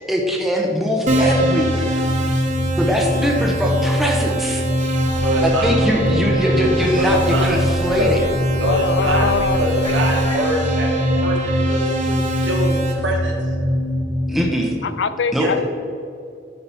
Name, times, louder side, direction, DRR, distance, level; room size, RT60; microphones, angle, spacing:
voice 1, 0.0-2.1 2.8-4.6 5.4-8.3 14.3-14.7 15.3-15.5, equal, ahead, 0 dB, 1.1 m, -21 dB
sound 1, 1.0-14.4, equal, 25° right, 1.2 m, -23 dB
Keyboard (musical), 1.1-12.9, right 2 dB, 45° right, 1.7 m, -25 dB
sound 2, 5.0-10.5, equal, 25° left, 0.9 m, -33 dB
voice 2, 5.2-6.0 7.0-7.6 8.0-8.2 8.6-13.3 15.4-15.6, right 1 dB, 85° right, -1 dB, 1.8 m, -24 dB
voice 3, 8.0-9.7 14.8-15.6, left 5 dB, 65° left, 13 dB, 0.4 m, -23 dB
12.5 x 5.3 x 4.3 m, 2.5 s
head